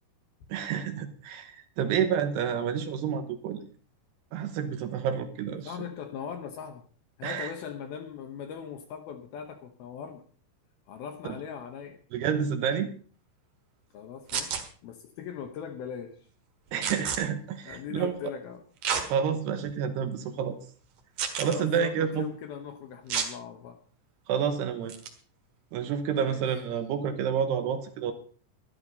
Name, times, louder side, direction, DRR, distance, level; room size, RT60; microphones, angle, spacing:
voice 1, 0.5-3.6 4.3-5.7 7.2-7.5 12.1-12.9 16.7-18.1 19.1-20.6 21.4-22.3 24.3-25.0 25.7-28.1, right 7 dB, 75° right, 8 dB, 2.8 m, -29 dB
voice 2, 5.6-6.8 7.2-10.2 10.9-12.0 13.9-16.2 17.7-18.6 21.4-23.8 26.2-26.5, left 7 dB, 70° left, 6 dB, 2.5 m, -40 dB
sound 1, 14.3-14.6 16.8-17.2 18.8-19.1 19.7-19.8 21.2-21.6 23.1-23.3 24.9-25.1, right 7 dB, 55° right, 2.6 m, -29 dB
13.5 x 12.0 x 5.3 m, 0.43 s
omnidirectional pair, 5.4 m